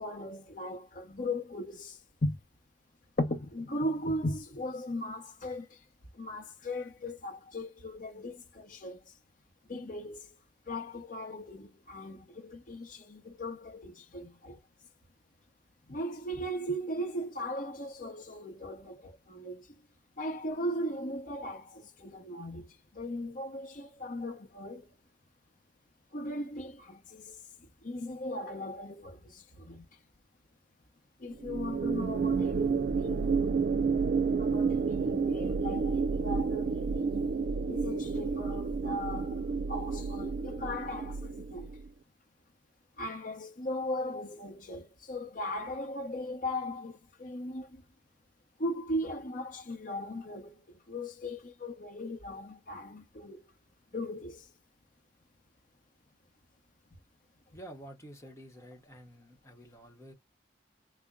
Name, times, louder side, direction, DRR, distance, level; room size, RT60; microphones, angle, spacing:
voice 1, 0.0-2.4 3.2-5.8 6.1-9.1 9.7-10.3 10.7-14.6 15.9-19.7 20.2-24.9 26.1-29.9 31.2-33.4 34.4-37.4 37.7-39.4 39.7-41.7 43.0-47.8 48.6-53.5 53.9-54.5, left 1 dB, 50° left, 0.8 m, -38 dB
sound 1, 31.4-41.9, right 5 dB, 50° right, 0.3 m, -30 dB
voice 2, 57.5-60.1, right 1 dB, 15° left, 0.9 m, -49 dB
4.0 x 2.1 x 3.6 m
head